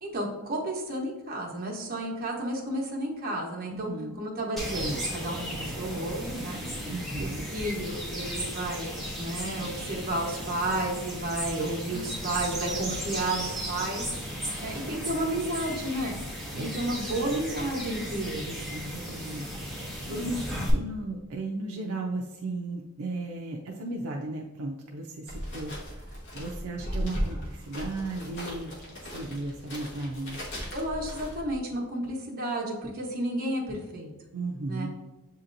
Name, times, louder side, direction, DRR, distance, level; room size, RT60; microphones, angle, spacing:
voice 1, 0.0-6.6 7.2-8.9 9.2-14.1 14.6-16.2 16.5-18.6 20.1-20.2 30.7-34.1 34.7-34.9, right 1 dB, 40° right, -1 dB, 1.0 m, -32 dB
voice 2, 3.7-4.2 6.8-7.5 16.5-16.9 18.7-20.4 20.7-28.7 29.0-30.4 34.3-34.9, right 2 dB, 70° right, 1 dB, 0.5 m, -35 dB
sound 1, 4.6-20.7, equal, ahead, 1.0 m, -35 dB
sound 2, 25.3-31.6, equal, 55° left, 1.2 m, -37 dB
7.5 x 2.8 x 2.5 m, 1.1 s
head